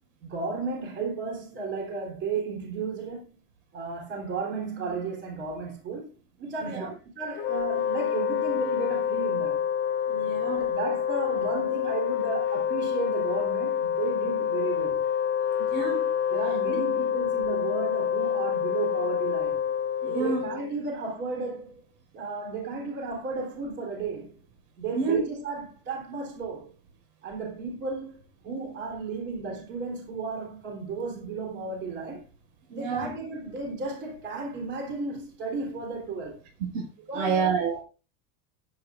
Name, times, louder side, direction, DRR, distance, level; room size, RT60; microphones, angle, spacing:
voice 1, 0.2-3.4 3.7-9.6 10.5-15.0 16.3-19.6 20.1-21.8 22.1-24.3 24.8-26.7 27.2-28.2 28.4-32.2 32.7-36.4 37.1-37.5, right 4 dB, 30° right, 3.4 m, -34 dB
Wind instrument woodwind instrument, 7.4-20.8, left 8 dB, 30° left, 0.6 m, -27 dB
voice 2, 10.1-10.6 15.6-16.1 16.7-16.8 20.0-20.5 24.9-25.2 32.7-33.1 36.7-36.9 37.1-37.8, right 5 dB, 65° right, 5.3 m, -28 dB
19.5 x 8.6 x 2.4 m
cardioid pair, 175°, 39 cm